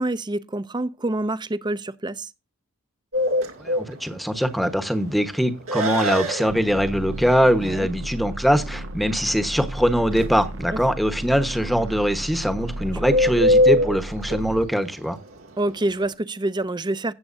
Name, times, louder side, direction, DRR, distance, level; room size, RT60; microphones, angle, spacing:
voice 1, 0.0-2.3 7.6-7.9 12.8-13.0 15.6-17.1, right 2 dB, 20° right, 0.6 m, -27 dB
Bird, 3.1-16.1, left 1 dB, 85° right, 2.3 m, -25 dB
voice 2, 3.6-15.2, equal, ahead, 1.1 m, -22 dB
sound 1, 6.5-14.7, right 1 dB, 65° right, 1.1 m, -34 dB
17.0 x 7.8 x 2.6 m
head